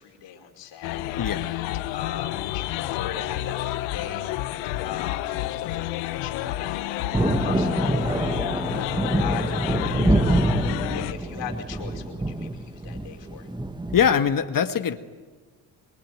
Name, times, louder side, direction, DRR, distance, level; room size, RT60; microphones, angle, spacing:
voice 1, 0.0-1.6 1.9-4.3 4.8-7.1 7.4-10.6 10.9-13.5, left 8 dB, 70° left, 3 dB, 5.1 m, -39 dB
sound 1, 0.8-11.1, left 15 dB, 90° left, 1.0 m, -30 dB
voice 2, 1.2-1.5 13.9-15.0, left 7 dB, 45° left, 8 dB, 1.8 m, -22 dB
Thunder, 7.1-14.1, right 2 dB, 10° right, 1.9 m, -25 dB
27.0 x 22.5 x 9.2 m, 1.3 s
supercardioid pair, 70°, 44 cm